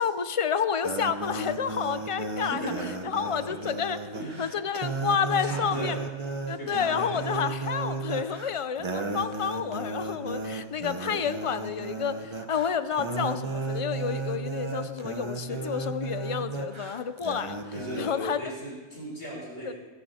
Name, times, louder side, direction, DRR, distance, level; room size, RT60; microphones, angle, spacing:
voice 1, 0.0-2.7 3.0-4.0 4.4-6.0 6.5-18.4 19.7-19.8, left 7 dB, 45° left, 13 dB, 0.4 m, -30 dB
sound 1, 0.8-18.1, right 3 dB, 25° right, 1.0 m, -34 dB
voice 2, 2.4-3.1 3.5-3.6 4.1-4.5 5.4-6.0 6.5-7.2 15.5-15.6 17.7-19.7, right 1 dB, 65° left, -3 dB, 4.8 m, -37 dB
20.5 x 11.0 x 4.3 m, 1.3 s
omnidirectional pair, 1.2 m